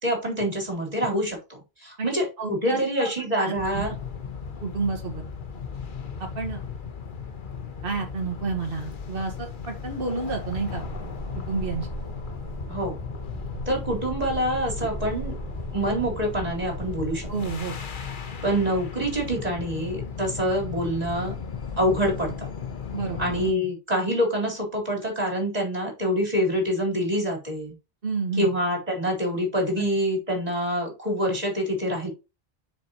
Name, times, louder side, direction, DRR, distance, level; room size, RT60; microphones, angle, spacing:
voice 1, 0.0-1.4 1.8-3.9 12.7-13.0 13.7-15.3 15.7-17.3 18.4-21.4 21.8-22.5 23.2-27.7 28.4-32.1, equal, 40° right, 0 dB, 4.1 m, -26 dB
voice 2, 2.0-3.1 3.4-3.9 4.6-5.2 6.2-6.6 7.8-10.8 11.5-11.9 17.3-17.8 22.9-23.2 28.0-28.5 29.8-29.9, right 4 dB, 60° right, 2 dB, 1.7 m, -30 dB
sound 1, 3.6-23.5, left 6 dB, 55° left, 1.2 m, -36 dB
sound 2, 10.5-17.6, right 2 dB, 30° left, 3.4 m, -38 dB
7.6 x 6.3 x 3.0 m, 0.27 s
omnidirectional pair, 1.0 m